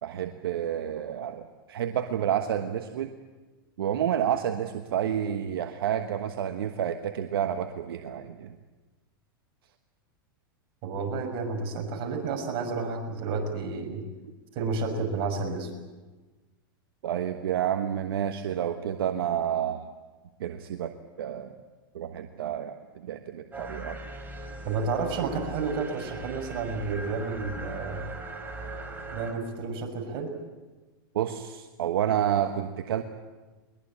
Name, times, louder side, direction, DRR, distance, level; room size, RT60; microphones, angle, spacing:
voice 1, 0.0-3.1 3.8-8.5 17.0-19.9 20.4-20.9 21.2-21.5 21.9-22.8 23.0-24.0 31.1-33.0, right 10 dB, 75° right, 7 dB, 1.3 m, -29 dB
voice 2, 10.8-14.0 14.5-15.7 24.6-28.1 29.1-30.3, right 4 dB, 50° right, 3 dB, 6.1 m, -31 dB
sound 1, 23.5-29.3, right 2 dB, 15° right, 4.2 m, -39 dB
22.0 x 21.5 x 8.8 m, 1.2 s
hypercardioid pair, 120°, 12 cm